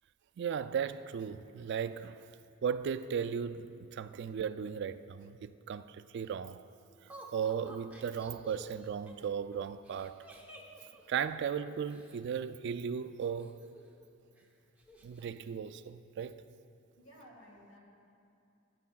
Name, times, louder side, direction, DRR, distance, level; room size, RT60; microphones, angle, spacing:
voice 1, 0.4-2.3 2.6-6.6 7.3-10.2 11.1-13.6 15.0-16.4, right 7 dB, 55° right, 0.3 m, -36 dB
Laughter, 7.1-12.2 13.2-14.1 14.4-14.5 14.8-15.2, equal, 10° right, 0.9 m, -52 dB
voice 2, 17.0-17.8, equal, 90° left, 2.6 m, -55 dB
17.0 x 9.4 x 2.3 m
head